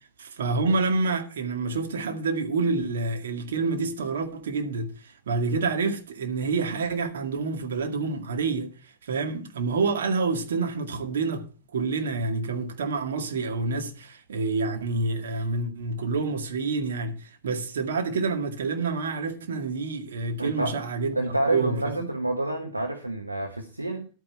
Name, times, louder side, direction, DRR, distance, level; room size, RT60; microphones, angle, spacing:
voice 1, 0.2-21.2 21.5-22.1, right 4 dB, 65° right, 2.1 m, -28 dB
voice 2, 20.4-20.8 21.1-24.1, right 1 dB, 85° right, 1.2 m, -28 dB
12.0 x 9.1 x 4.4 m
figure-of-eight pair, 90°, 0 cm